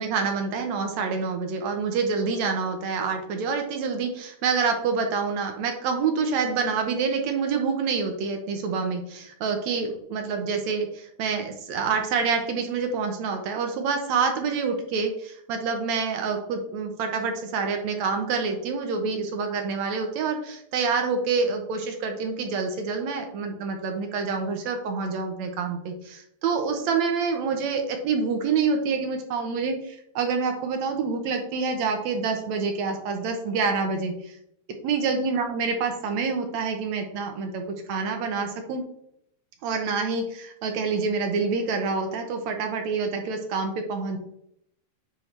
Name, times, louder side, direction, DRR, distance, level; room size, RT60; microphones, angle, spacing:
voice 1, 0.0-34.4 34.8-38.8 39.6-44.2, right 5 dB, 70° right, 5 dB, 2.0 m, -27 dB
8.9 x 4.5 x 3.3 m, 0.74 s
omnidirectional pair, 3.5 m